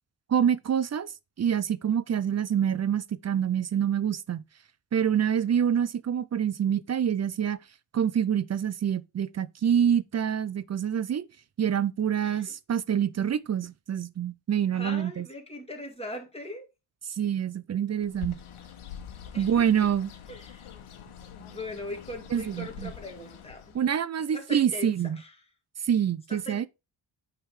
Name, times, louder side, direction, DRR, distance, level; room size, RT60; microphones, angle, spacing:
voice 1, 0.3-1.1 1.4-4.4 4.9-7.6 7.9-11.3 11.6-15.3 17.2-18.4 19.4-20.1 22.3-22.9 23.7-25.2 25.8-26.7, right 8 dB, 35° right, 0.4 m, -26 dB
voice 2, 14.7-16.7 19.3-19.9 20.3-20.7 21.3-23.8 24.3-25.3 26.3-26.7, left 1 dB, 10° left, 2.0 m, -40 dB
Bird, 18.0-23.9, left 8 dB, 85° left, 1.3 m, -45 dB
8.7 x 3.6 x 4.8 m
wide cardioid pair, 135°, 48 cm